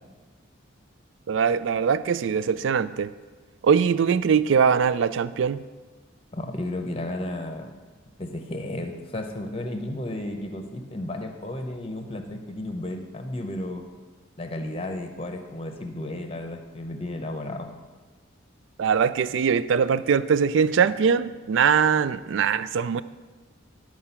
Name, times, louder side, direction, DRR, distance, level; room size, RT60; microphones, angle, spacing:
voice 1, 1.3-3.1 3.6-5.6 18.8-23.0, right 6 dB, 65° right, 16 dB, 0.3 m, -22 dB
voice 2, 6.3-7.8 8.2-13.8 14.4-17.7, left 1 dB, 30° left, 5 dB, 0.8 m, -33 dB
11.5 x 4.7 x 5.7 m, 1.3 s
head